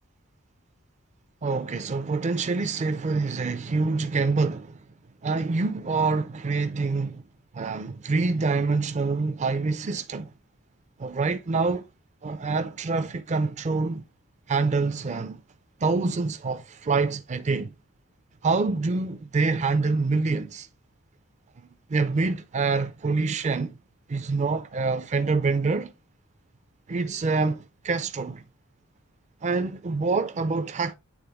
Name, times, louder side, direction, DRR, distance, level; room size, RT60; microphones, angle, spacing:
voice 1, 1.4-4.8 5.2-7.2 7.5-10.3 11.0-11.9 12.2-14.0 14.5-15.4 15.8-17.7 18.4-20.7 21.9-23.8 24.1-25.9 26.9-28.4 29.4-30.9, right 4 dB, 35° right, 0.4 m, -26 dB
8.7 x 3.7 x 3.4 m
head